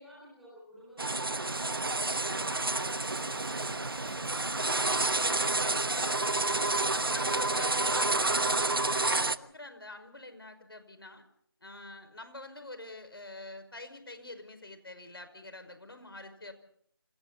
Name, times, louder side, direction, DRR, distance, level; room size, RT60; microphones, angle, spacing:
voice 1, 0.0-5.2, equal, ahead, -9 dB, 4.3 m, -54 dB
sound 1, 1.0-9.4, right 2 dB, 60° right, 1.1 m, -29 dB
sound 2, 1.5-8.7, left 2 dB, 85° left, 3.7 m, -51 dB
voice 2, 5.1-5.8 6.4-11.2 11.6-16.5, left 2 dB, 65° left, 8 dB, 5.6 m, -46 dB
28.5 x 27.5 x 4.2 m, 0.63 s
figure-of-eight pair, 180°, 13 cm